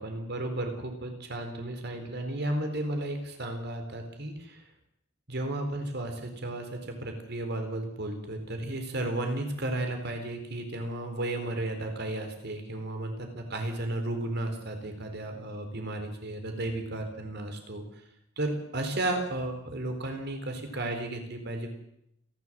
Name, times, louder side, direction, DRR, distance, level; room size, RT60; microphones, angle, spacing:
voice 1, 0.0-4.6 5.3-17.8 18.4-21.7, right 1 dB, 55° right, 5 dB, 4.2 m, -33 dB
29.0 x 12.0 x 7.6 m, 0.75 s
head